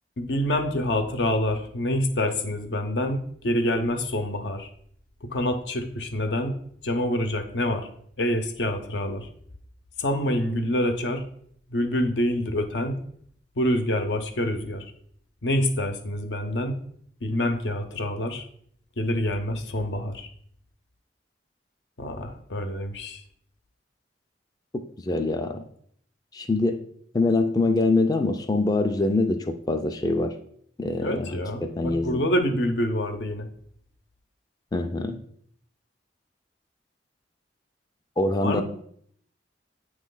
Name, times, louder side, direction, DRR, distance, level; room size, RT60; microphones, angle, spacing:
voice 1, 0.2-4.7 5.2-6.5 6.8-7.9 8.2-9.3 10.0-11.2 11.7-13.0 13.6-14.8 15.4-16.8 17.2-18.4 19.0-20.3 22.0-23.2 31.0-33.5 38.4-38.6, left 1 dB, 80° left, 6 dB, 0.8 m, -26 dB
voice 2, 24.7-25.6 26.3-26.8 27.1-30.4 30.8-32.2 34.7-35.2 38.2-38.6, left 2 dB, 20° left, 5 dB, 0.4 m, -24 dB
8.2 x 3.1 x 3.8 m, 0.64 s
head